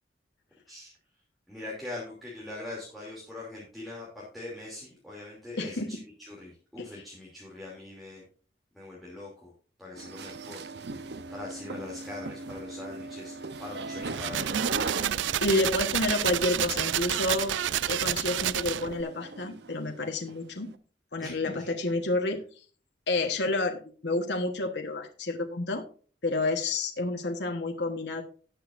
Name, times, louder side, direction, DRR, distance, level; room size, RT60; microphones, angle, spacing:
voice 1, 1.5-8.2 8.7-9.5 9.8-10.6 11.3-15.1 21.2-21.7, left 2 dB, ahead, -5 dB, 2.8 m, -42 dB
voice 2, 5.6-6.0 15.4-17.6 17.9-20.7 21.1-22.4 23.1-25.8 26.2-28.2, left 2 dB, 65° left, 3 dB, 1.3 m, -29 dB
sound 1, 10.0-20.8, right 3 dB, 65° right, 0.7 m, -39 dB
sound 2, 14.0-19.0, right 11 dB, 80° right, 0.4 m, -29 dB
18.0 x 6.3 x 2.6 m, 0.41 s
head